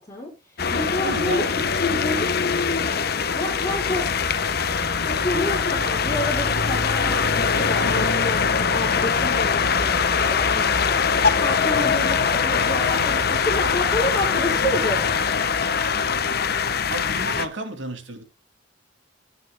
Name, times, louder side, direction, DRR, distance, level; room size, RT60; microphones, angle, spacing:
voice 1, 0.0-1.5 1.8-2.3 3.4-4.5 5.0-15.1, left 1 dB, 15° left, 5.5 m, -29 dB
sound 1, 0.6-17.5, left 5 dB, 55° left, 1.0 m, -22 dB
voice 2, 1.0-1.8 11.8-12.3 16.9-18.2, right 1 dB, 70° right, 2.6 m, -33 dB
17.5 x 9.2 x 2.2 m
head